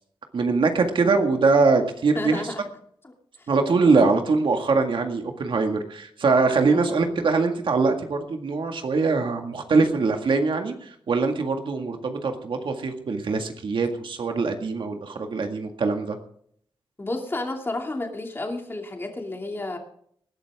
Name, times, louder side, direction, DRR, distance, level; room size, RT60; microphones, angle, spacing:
voice 1, 0.3-2.4 3.5-16.2, right 4 dB, 70° right, 5 dB, 1.9 m, -22 dB
voice 2, 2.1-2.6 3.0-3.5 3.8-4.2 6.7-7.2 17.0-19.8, left 2 dB, 25° left, 2 dB, 2.6 m, -32 dB
20.0 x 12.5 x 3.6 m, 0.64 s
wide cardioid pair, 115°, 9 cm